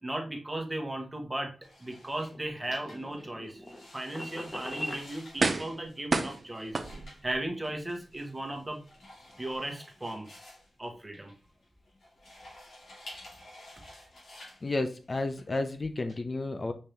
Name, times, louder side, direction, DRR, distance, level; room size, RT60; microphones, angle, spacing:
voice 1, 0.0-1.5 1.8-3.6 3.9-6.8 7.2-8.8 9.4-10.4 10.8-11.3, right 1 dB, 20° right, 3 dB, 1.1 m, -36 dB
sound 1, 1.6-16.1, left 1 dB, 85° left, 2.5 m, -52 dB
sound 2, 2.3-5.1, equal, 15° left, 1.0 m, -41 dB
sound 3, 4.5-4.6 5.4-5.8 6.1-7.4 7.9-8.0, right 3 dB, 45° right, 0.5 m, -30 dB
voice 2, 14.6-16.7, left 2 dB, 40° left, 7 dB, 0.5 m, -32 dB
5.3 x 2.8 x 3.3 m, 0.35 s
wide cardioid pair, 80°, 0 cm